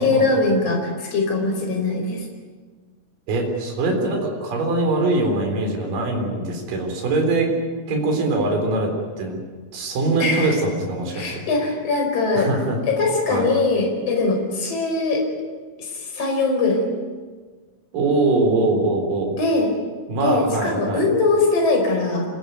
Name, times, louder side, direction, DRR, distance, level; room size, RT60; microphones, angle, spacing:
voice 1, 0.0-2.2 10.2-10.5 11.1-12.5 12.9-15.2 15.8-16.9 19.4-19.7 20.2-22.3, left 3 dB, 40° left, 1 dB, 5.8 m, -21 dB
voice 2, 3.3-7.5 7.9-8.9 9.2-9.4 9.7-11.4 12.4-12.8 13.3-13.5 17.9-19.3 20.1-21.0, right 2 dB, 55° right, 2 dB, 5.4 m, -22 dB
26.5 x 19.0 x 9.4 m, 1.5 s
omnidirectional pair, 4.7 m